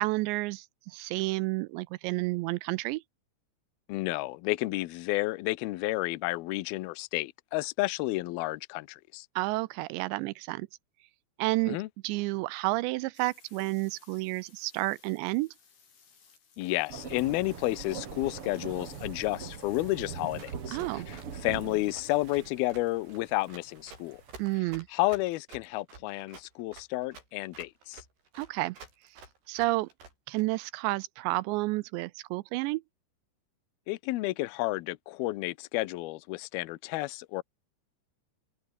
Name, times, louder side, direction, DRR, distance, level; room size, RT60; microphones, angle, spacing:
voice 1, 0.0-3.0 9.4-10.7 11.4-11.8 12.0-15.5 20.7-21.1 24.4-24.9 28.4-28.8 29.5-29.9 30.3-32.8, right 21 dB, 80° right, 2.6 m, -30 dB
voice 2, 3.9-9.3 11.7-11.9 16.6-24.2 24.9-28.0 33.9-37.4, left 19 dB, 90° left, 2.2 m, -31 dB
sound 1, 13.1-20.5, left 6 dB, 55° left, 7.7 m, -60 dB
sound 2, 16.9-24.6, right 6 dB, 40° right, 2.5 m, -42 dB
Run, 20.4-30.4, right 4 dB, 60° right, 9.9 m, -50 dB
omnidirectional pair, 5.5 m